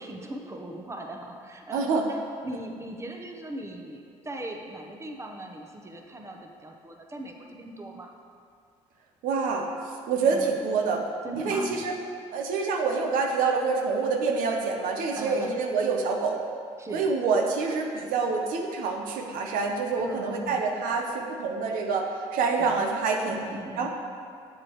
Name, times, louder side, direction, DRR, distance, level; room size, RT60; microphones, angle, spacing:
voice 1, 0.0-8.1 10.3-10.6 11.2-11.8 15.1-15.6 16.8-17.1 20.0-20.6 22.6-22.8 23.2-23.9, right 1 dB, 20° right, 2 dB, 0.9 m, -39 dB
voice 2, 1.7-2.1 9.2-9.7 10.1-11.0 11.4-11.9 12.3-16.4 16.9-23.4 23.8-23.9, right 4 dB, 75° right, 2 dB, 0.8 m, -26 dB
7.6 x 7.4 x 3.1 m, 2.3 s
supercardioid pair, 70°, 14 cm